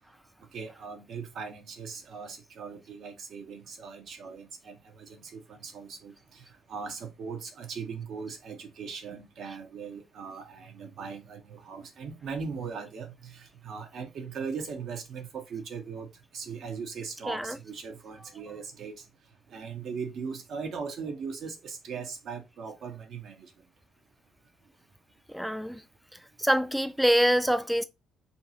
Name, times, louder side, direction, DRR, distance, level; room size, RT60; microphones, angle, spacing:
voice 1, 0.5-19.0 19.5-23.5, right 5 dB, 60° right, 0.7 m, -39 dB
voice 2, 25.3-25.8 26.4-27.8, equal, ahead, 0.3 m, -25 dB
2.6 x 2.3 x 2.6 m
hypercardioid pair, 50°, 0 cm